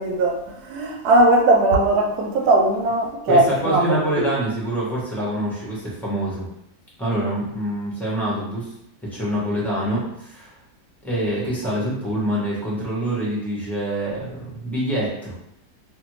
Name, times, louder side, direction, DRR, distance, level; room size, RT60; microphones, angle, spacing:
voice 1, 0.0-4.2, right 2 dB, 90° right, 1 dB, 1.1 m, -19 dB
voice 2, 3.3-6.5 7.0-8.7 9.0-10.5 11.0-15.3, right 1 dB, ahead, -7 dB, 0.6 m, -25 dB
2.5 x 2.5 x 3.0 m, 0.78 s
omnidirectional pair, 1.6 m